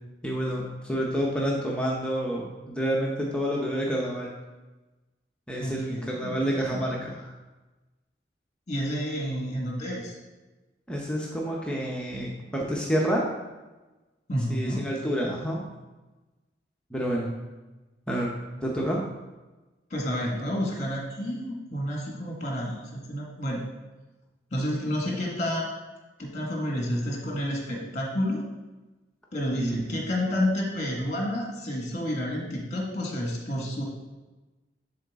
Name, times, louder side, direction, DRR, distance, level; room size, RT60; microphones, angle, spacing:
voice 1, 0.2-4.3 5.5-7.3 10.9-13.2 14.5-15.6 16.9-17.3 18.1-18.3 18.6-19.0 29.5-30.1, equal, 5° left, -3 dB, 0.8 m, -28 dB
voice 2, 5.6-6.8 8.7-10.2 14.3-14.9 19.9-23.7 24.5-25.9 26.2-28.4 29.3-33.8, equal, 40° left, -1 dB, 1.6 m, -30 dB
11.0 x 4.0 x 3.6 m, 1.2 s
head